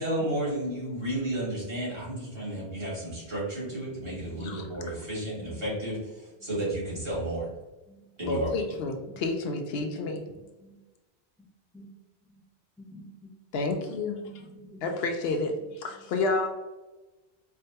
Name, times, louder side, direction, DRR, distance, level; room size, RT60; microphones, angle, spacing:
voice 1, 0.0-7.5 8.2-8.5, right 1 dB, 65° right, -6 dB, 1.9 m, -32 dB
voice 2, 5.4-5.7 6.4-6.5 7.9-8.0 9.8-10.7 11.7-11.9 12.3-12.4 12.8-13.0 14.2-14.9 16.0-16.1, equal, 5° left, -4 dB, 0.8 m, -50 dB
voice 3, 8.2-10.2 13.5-14.1 14.8-16.5, left 3 dB, 70° left, 3 dB, 0.8 m, -30 dB
4.6 x 2.2 x 2.7 m, 1.1 s
omnidirectional pair, 1.1 m